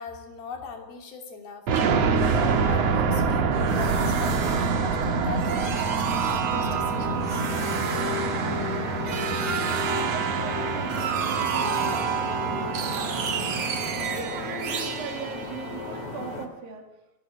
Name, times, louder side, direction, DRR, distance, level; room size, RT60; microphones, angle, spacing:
voice 1, 0.0-1.6 2.2-7.4, left 4 dB, 75° left, 3 dB, 4.8 m, -39 dB
sound 1, 1.7-16.3, right 5 dB, 50° right, 2.4 m, -26 dB
sound 2, 6.6-16.5, left 6 dB, 55° left, 3.2 m, -35 dB
voice 2, 8.2-9.3 9.6-12.4 12.7-13.8 14.1-17.0, right 5 dB, 70° right, 4 dB, 4.3 m, -40 dB
28.5 x 12.0 x 9.0 m, 0.99 s
omnidirectional pair, 4.3 m